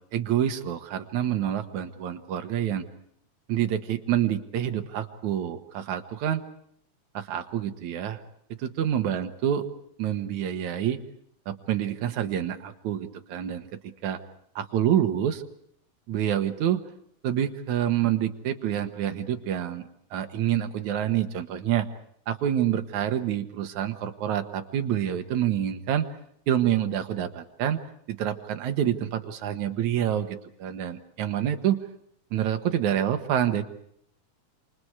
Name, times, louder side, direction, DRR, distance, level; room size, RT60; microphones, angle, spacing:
voice 1, 0.1-2.9 3.5-6.5 7.1-8.2 8.6-9.7 10.0-11.0 11.5-14.2 14.6-15.4 16.1-16.8 17.2-21.9 22.3-26.1 26.5-31.8 32.3-33.6, right 10 dB, 70° right, 8 dB, 2.9 m, -27 dB
28.0 x 27.5 x 4.9 m, 0.69 s
omnidirectional pair, 3.5 m